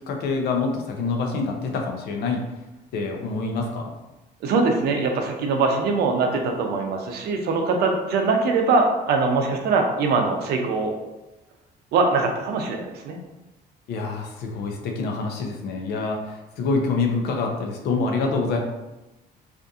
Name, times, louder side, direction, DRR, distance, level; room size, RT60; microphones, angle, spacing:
voice 1, 0.1-2.4 2.9-3.9 13.9-18.6, left 3 dB, 75° left, 2 dB, 0.5 m, -26 dB
voice 2, 4.4-10.9 11.9-13.2, right 4 dB, 70° right, 3 dB, 0.5 m, -22 dB
2.6 x 2.5 x 2.3 m, 1.0 s
cardioid pair, 110°, 17 cm